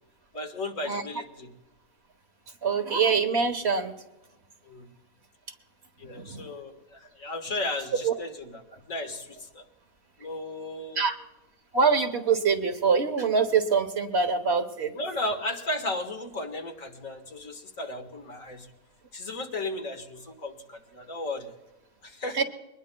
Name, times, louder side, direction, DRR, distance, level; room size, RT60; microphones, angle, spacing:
voice 1, 0.3-1.5 4.7-4.9 6.0-9.6 10.2-11.1 14.9-18.7 19.1-21.5 22.0-22.4, left 2 dB, 70° left, 4 dB, 2.0 m, -35 dB
voice 2, 2.6-3.9 6.1-6.4 8.0-8.1 11.0-11.2 11.7-14.9 22.3-22.4, right 5 dB, 50° right, 6 dB, 1.4 m, -24 dB
23.0 x 20.0 x 2.3 m, 1.0 s
omnidirectional pair, 1.5 m